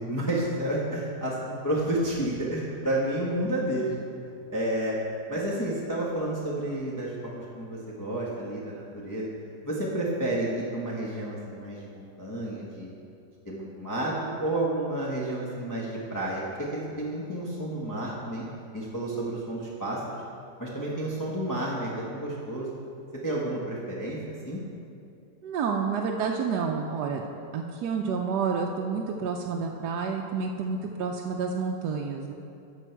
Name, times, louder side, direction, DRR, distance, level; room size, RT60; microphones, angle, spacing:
voice 1, 0.0-3.9 4.5-5.0 5.3-9.3 9.6-12.9 13.4-14.1 14.4-18.4 18.7-20.2 20.6-22.7 23.2-24.2 24.4-24.6, right 1 dB, 15° left, -6 dB, 0.9 m, -30 dB
voice 2, 25.4-27.3 27.5-32.3, right 5 dB, 75° right, 1 dB, 1.1 m, -29 dB
12.0 x 6.3 x 4.5 m, 2.7 s
omnidirectional pair, 1.9 m